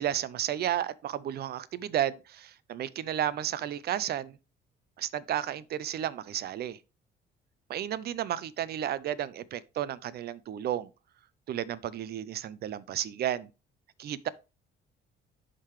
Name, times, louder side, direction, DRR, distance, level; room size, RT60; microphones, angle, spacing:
voice 1, 0.0-4.4 5.0-6.8 7.7-10.9 11.5-13.5 14.0-14.3, right 11 dB, 55° right, 0.5 m, -32 dB
11.0 x 3.8 x 3.1 m
cardioid pair, 125°, 20 cm